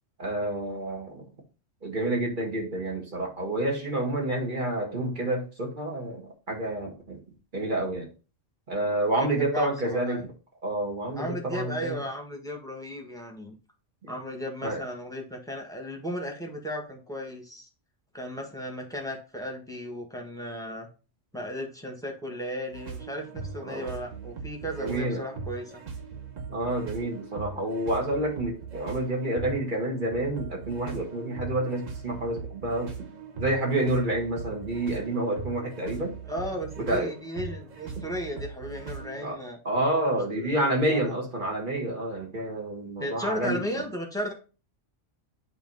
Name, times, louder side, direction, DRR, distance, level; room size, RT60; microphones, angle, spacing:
voice 1, 0.2-1.2 1.8-7.2 7.5-8.1 8.7-10.3 10.6-12.0 14.0-14.1 14.6-14.8 23.7-23.9 24.8-25.2 26.5-32.9 33.4-36.1 36.8-37.1 39.2-39.4 39.6-43.8, right 1 dB, 40° right, 0 dB, 1.8 m, -29 dB
voice 2, 9.1-10.3 11.2-13.5 14.1-17.7 18.1-20.9 21.3-25.8 36.3-39.6 40.4-41.1 43.0-44.3, equal, 5° left, 2 dB, 1.4 m, -35 dB
sound 1, 22.7-39.3, right 5 dB, 90° right, 1.6 m, -40 dB
8.1 x 3.0 x 5.4 m, 0.34 s
omnidirectional pair, 1.3 m